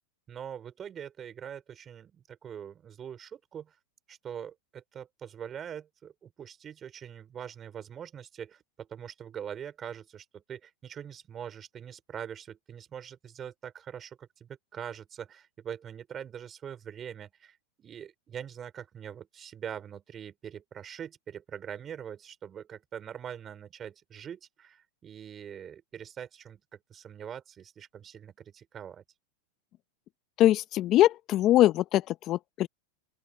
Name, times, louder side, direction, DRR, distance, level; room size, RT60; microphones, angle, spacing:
voice 1, 0.3-3.7 4.1-29.0, right 8 dB, 30° right, 5.5 m, -43 dB
voice 2, 30.4-32.7, left 14 dB, 40° left, 1.0 m, -22 dB
open air
hypercardioid pair, 105°, 0 cm